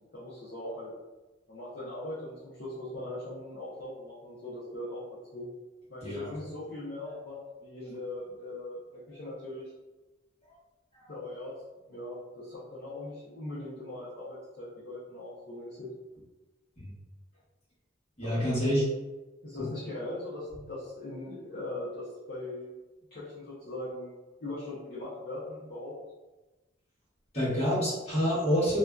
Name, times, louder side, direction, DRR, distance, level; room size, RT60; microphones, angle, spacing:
voice 1, 0.1-0.9 1.5-5.0 5.3-5.4 5.9-9.7 11.1-11.5 11.9-15.9 18.2-18.7 19.4-22.7 23.1-25.9, left 1 dB, 50° left, -9 dB, 0.6 m, -40 dB
voice 2, 18.2-18.8 27.3-28.8, equal, 35° left, -8 dB, 1.0 m, -27 dB
2.5 x 2.2 x 2.2 m, 1.1 s
head